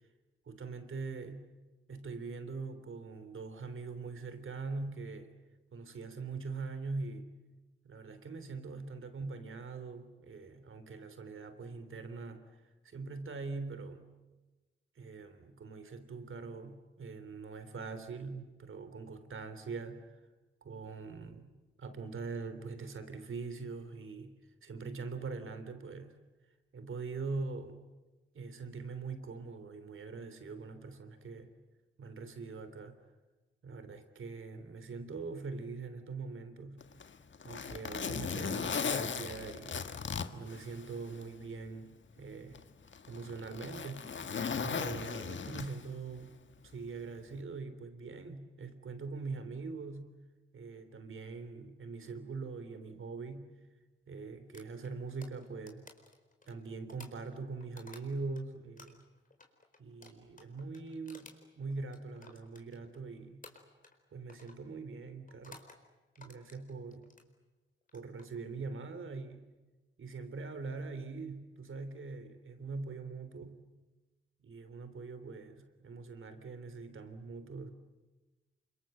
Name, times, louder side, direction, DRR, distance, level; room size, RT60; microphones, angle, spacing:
voice 1, 0.5-1.5 1.9-5.3 5.7-7.3 7.8-12.5 12.8-14.0 15.0-20.1 20.6-26.2 26.7-27.9 28.3-31.5 32.0-33.0 33.6-36.9 37.4-39.9 40.3-42.6 43.1-44.1 44.6-46.4 46.6-50.2 50.5-53.5 54.1-55.9 56.5-59.1 59.8-63.5 64.1-65.6 66.2-67.1 67.9-69.5 70.0-73.6 74.4-77.7, right 4 dB, 80° right, 10 dB, 3.3 m, -43 dB
Zipper (clothing), 36.8-41.3 41.7-41.8 42.5-46.0 47.2-47.4, left 6 dB, 65° left, 1.5 m, -37 dB
sound 1, 54.5-58.4 58.8-63.0 63.4-64.0 64.3-64.6 65.3-65.8 66.1-67.3 67.8-68.2, left 3 dB, 40° left, 4.3 m, -56 dB
29.0 x 26.0 x 7.9 m, 1.2 s
wide cardioid pair, 110°, 21 cm